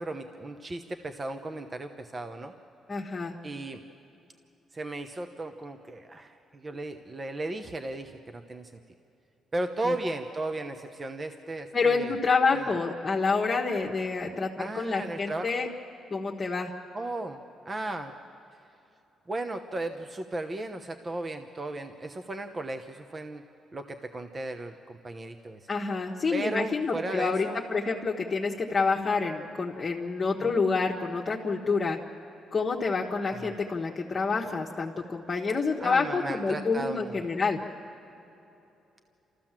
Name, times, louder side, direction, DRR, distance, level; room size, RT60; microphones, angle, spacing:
voice 1, 0.0-2.5 3.4-3.8 4.7-8.7 9.5-12.1 12.5-12.7 14.6-15.7 16.9-18.1 19.3-23.4 23.7-25.7 26.3-27.6 30.4-30.7 33.3-33.4 35.8-37.3, right 2 dB, 30° right, 7 dB, 1.0 m, -35 dB
voice 2, 2.9-3.3 9.8-9.9 11.7-15.7 16.1-16.7 25.7-32.0 32.5-37.6, left 4 dB, 30° left, -3 dB, 1.4 m, -28 dB
29.0 x 14.5 x 7.5 m, 2.9 s
cardioid pair, 90°, 0 cm